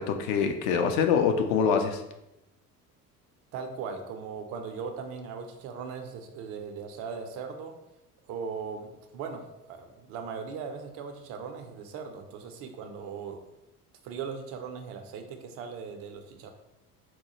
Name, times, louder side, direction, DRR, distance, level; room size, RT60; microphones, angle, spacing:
voice 1, 0.0-2.0, left 6 dB, 50° left, 6 dB, 0.5 m, -25 dB
voice 2, 3.5-7.7 8.3-13.4 14.0-16.5, right 5 dB, 30° right, 5 dB, 0.4 m, -39 dB
3.9 x 2.2 x 2.9 m, 0.89 s
figure-of-eight pair, 65°, 47 cm